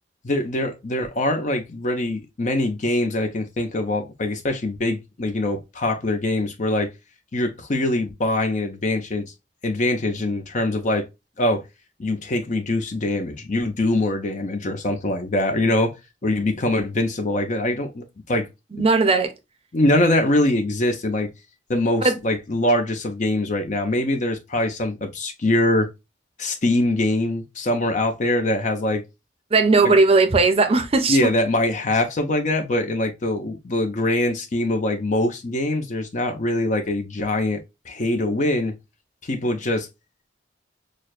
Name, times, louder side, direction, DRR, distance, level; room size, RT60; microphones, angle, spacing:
voice 1, 0.2-6.9 7.3-9.3 9.6-11.1 11.4-11.6 12.0-16.0 16.2-18.5 19.7-21.3 21.7-25.9 26.4-29.0 29.8-30.0 31.1-38.7 39.2-39.9, left 1 dB, 45° left, 0.7 m, -23 dB
voice 2, 18.7-19.3 22.0-22.2 29.5-31.3, right 3 dB, 35° right, 0.6 m, -17 dB
6.3 x 2.2 x 2.4 m
head